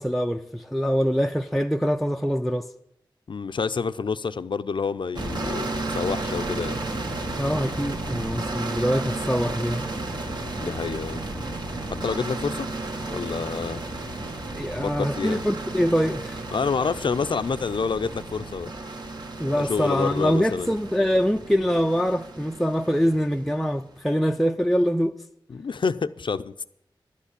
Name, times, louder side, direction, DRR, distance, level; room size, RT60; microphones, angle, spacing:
voice 1, 0.0-2.7 7.4-9.9 14.5-16.5 19.4-25.2, equal, ahead, 0.5 m, -24 dB
voice 2, 3.3-6.8 10.6-11.2 12.0-12.7 13.1-13.8 14.8-15.4 16.5-18.7 19.4-20.7 25.5-26.6, left 5 dB, 70° left, 0.5 m, -28 dB
sound 1, 5.1-23.8, right 2 dB, 60° right, 1.8 m, -33 dB
12.0 x 8.3 x 8.3 m
wide cardioid pair, 70°, 9 cm